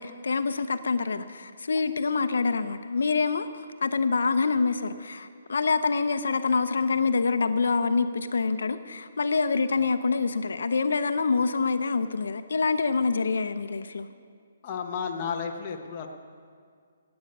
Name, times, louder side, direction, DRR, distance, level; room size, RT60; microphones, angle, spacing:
voice 1, 0.0-14.1, left 4 dB, 75° left, 11 dB, 0.6 m, -26 dB
voice 2, 14.6-16.1, left 6 dB, 20° left, 2 dB, 0.7 m, -32 dB
17.0 x 8.8 x 5.4 m, 2.1 s
hypercardioid pair, 180°, 0 cm